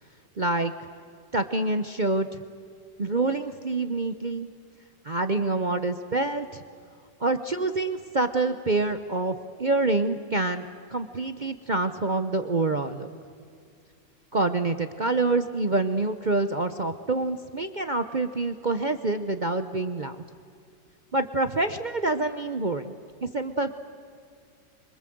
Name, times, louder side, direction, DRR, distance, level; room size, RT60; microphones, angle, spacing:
voice 1, 0.4-0.7 1.3-2.4 3.0-4.5 5.0-6.6 7.2-10.7 10.9-13.1 14.3-20.2 21.1-22.9 23.2-23.8, right 2 dB, 40° right, 9 dB, 0.6 m, -26 dB
26.0 x 24.0 x 7.8 m, 2.3 s
omnidirectional pair, 1.9 m